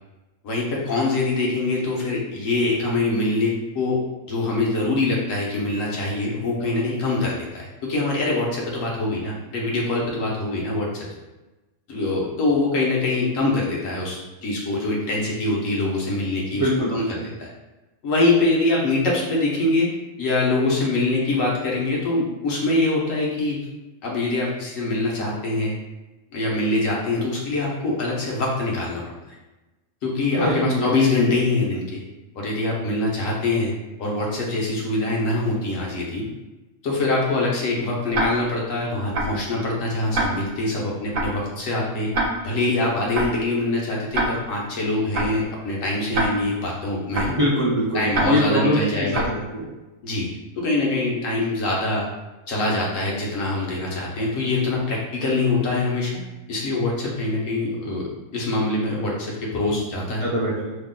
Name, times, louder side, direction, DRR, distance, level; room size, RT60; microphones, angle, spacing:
voice 1, 0.4-4.0 4.3-11.1 11.9-16.6 16.9-17.5 18.0-19.9 20.2-23.7 24.0-25.7 26.3-29.0 30.0-32.0 32.4-33.7 34.0-36.2 36.8-42.1 42.4-47.4 47.9-49.3 50.0-50.3 50.6-52.0 52.5-56.2 56.5-60.3, left 2 dB, 85° left, -3 dB, 1.2 m, -24 dB
voice 2, 16.5-17.3 30.4-30.9 47.3-48.8 49.1-49.6 60.2-60.8, equal, 40° right, -6 dB, 0.5 m, -23 dB
Tick-tock, 38.1-38.6 39.1-39.5 40.1-40.6 41.1-41.5 42.1-42.6 43.1-43.5 44.1-44.6 45.1-45.5 46.1-46.6 47.1-47.5 48.1-48.6 49.1-49.5, right 2 dB, 85° right, 1.0 m, -26 dB
3.1 x 2.1 x 3.7 m, 1.1 s
omnidirectional pair, 1.3 m